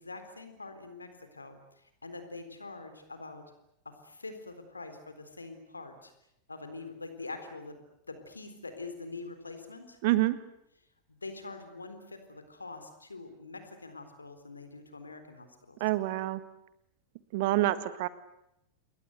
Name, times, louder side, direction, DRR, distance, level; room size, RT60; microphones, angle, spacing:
voice 1, 0.0-1.6 2.0-3.4 4.0-6.1 6.5-7.8 8.1-10.0 11.1-15.8, left 3 dB, 80° left, 8 dB, 3.9 m, -44 dB
voice 2, 10.0-10.4 15.8-16.4 17.3-18.1, right 16 dB, 50° right, 14 dB, 1.6 m, -27 dB
28.5 x 22.5 x 8.1 m, 0.80 s
figure-of-eight pair, 90°, 0 cm